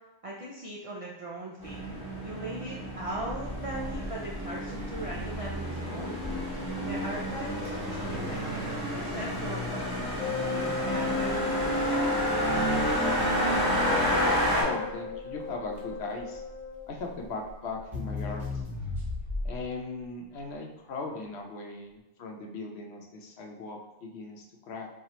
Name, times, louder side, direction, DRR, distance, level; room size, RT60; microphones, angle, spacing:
voice 1, 0.2-1.8 2.2-6.2 6.8-9.9 10.5-11.4, right 1 dB, 60° right, -4 dB, 0.3 m, -39 dB
sound 1, 1.6-14.6, equal, 20° left, 0.9 m, -30 dB
Crackle, 6.2-19.8, left 3 dB, ahead, 1.2 m, -39 dB
Wind instrument woodwind instrument, 10.2-16.8, left 4 dB, 35° left, 0.6 m, -35 dB
voice 2, 14.5-16.4 16.9-18.7 19.4-24.9, left 3 dB, 75° left, 2 dB, 0.9 m, -38 dB
4.4 x 2.4 x 2.9 m, 1.0 s
omnidirectional pair, 1.1 m